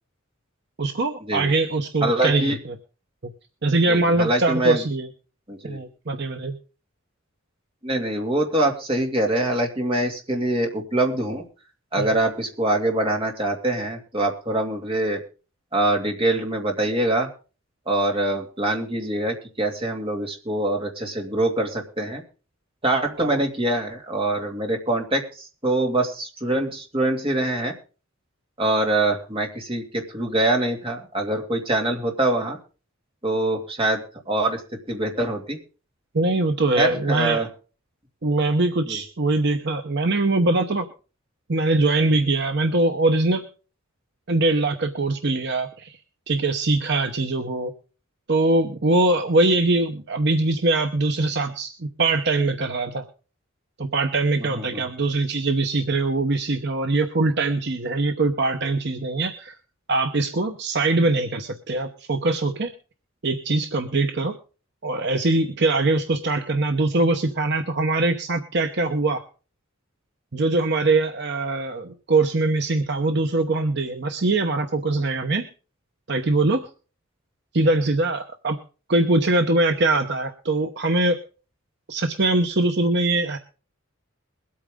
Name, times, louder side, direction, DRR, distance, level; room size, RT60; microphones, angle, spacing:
voice 1, 0.8-2.8 3.2-3.3 3.6-5.1 5.6-6.6 12.0-12.1 23.2-23.4 36.1-37.4 38.2-40.9 41.5-43.4 44.3-46.0 46.3-47.7 48.3-53.1 53.8-59.6 59.9-62.7 63.2-64.3 64.8-69.3 70.3-75.5 76.1-76.7 77.5-78.6 78.9-81.2 81.9-83.4, right 2 dB, 55° right, 6 dB, 0.9 m, -22 dB
voice 2, 2.0-2.6 3.8-4.8 5.5-5.8 7.8-11.4 11.9-15.2 15.7-17.3 17.9-22.2 22.8-27.7 28.6-32.6 33.2-34.6 34.9-35.6 36.8-37.5 38.9-39.0 54.4-54.8, right 1 dB, 25° right, 2 dB, 2.4 m, -24 dB
22.0 x 8.7 x 3.7 m, 0.36 s
head